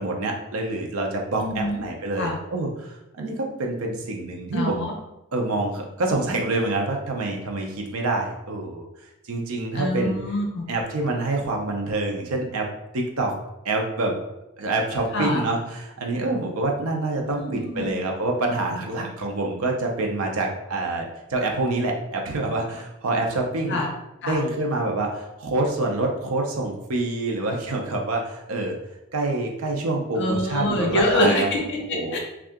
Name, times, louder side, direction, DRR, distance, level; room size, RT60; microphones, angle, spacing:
voice 1, 0.0-4.9 5.3-8.8 9.2-10.1 10.7-12.6 12.9-13.3 13.6-14.1 14.6-23.8 24.2-28.7 29.1-31.5 31.9-32.2, right 2 dB, 80° right, 1 dB, 0.6 m, -26 dB
voice 2, 1.4-1.8 2.2-2.4 4.5-4.9 9.7-10.6 15.1-15.5 17.3-17.9 23.7-23.9 24.2-24.4 30.2-32.2, left 1 dB, 55° left, 0 dB, 0.6 m, -25 dB
2.7 x 2.4 x 3.5 m, 0.94 s
head